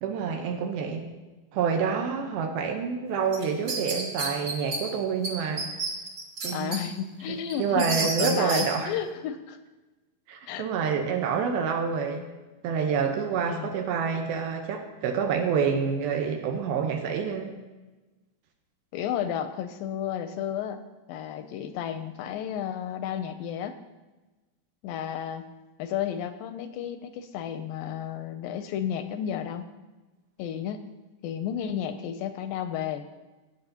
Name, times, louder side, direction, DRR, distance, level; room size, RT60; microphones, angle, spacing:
voice 1, 0.0-1.1 1.5-5.6 6.4-6.7 7.3-8.9 10.3-12.2 12.6-17.5, right 6 dB, 85° right, 3 dB, 2.8 m, -28 dB
sound 1, 3.3-4.8 5.2-5.3 5.6-6.8 7.2-8.7, right 3 dB, 45° right, 1.9 m, -30 dB
voice 2, 6.5-9.6 10.5-10.7 13.5-13.7 18.9-20.8 21.1-23.7 24.8-25.4 25.8-29.7 30.4-30.8 31.2-33.1, left 9 dB, 80° left, 9 dB, 2.1 m, -32 dB
16.5 x 9.1 x 2.8 m, 1.2 s
omnidirectional pair, 4.3 m